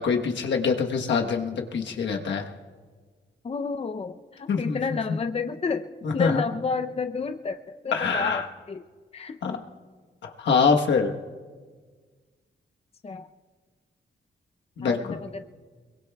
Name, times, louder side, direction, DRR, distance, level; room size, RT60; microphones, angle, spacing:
voice 1, 0.0-2.4 4.5-4.8 6.0-6.4 7.9-8.4 9.4-9.6 10.2-11.2 14.8-15.2, left 5 dB, 80° left, 3 dB, 1.2 m, -24 dB
voice 2, 3.4-8.8 9.1-9.6 13.0-13.3 14.8-15.4, left 5 dB, 35° left, 8 dB, 0.6 m, -31 dB
23.0 x 22.0 x 2.3 m, 1.5 s
cardioid pair, 75°, 19 cm